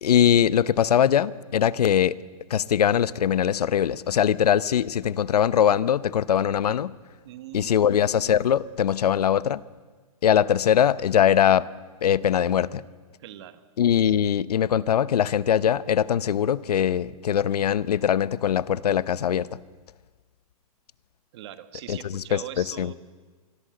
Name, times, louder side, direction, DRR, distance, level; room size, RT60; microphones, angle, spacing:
voice 1, 0.0-2.2 2.5-6.9 7.5-9.6 10.2-11.7 12.0-12.8 13.8-19.6 21.9-22.9, left 9 dB, 90° left, 17 dB, 0.8 m, -22 dB
voice 2, 7.2-7.9 13.2-13.6 14.0-14.1 21.3-22.9, right 12 dB, 45° right, 10 dB, 1.6 m, -41 dB
26.0 x 22.0 x 7.8 m, 1.4 s
hypercardioid pair, 165°, 19 cm